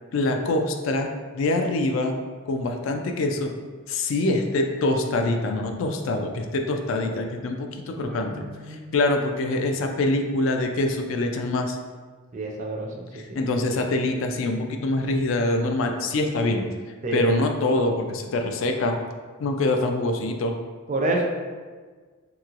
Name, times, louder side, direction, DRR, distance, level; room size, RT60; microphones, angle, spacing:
voice 1, 0.1-2.2 2.5-3.5 3.9-11.8 13.1-16.7 17.1-19.0 19.4-20.6, left 2 dB, 70° left, 4 dB, 0.3 m, -25 dB
voice 2, 7.9-8.9 12.3-13.4 17.0-17.2 20.9-21.2, right 2 dB, 35° right, 0 dB, 0.3 m, -29 dB
3.0 x 2.9 x 2.4 m, 1.5 s
head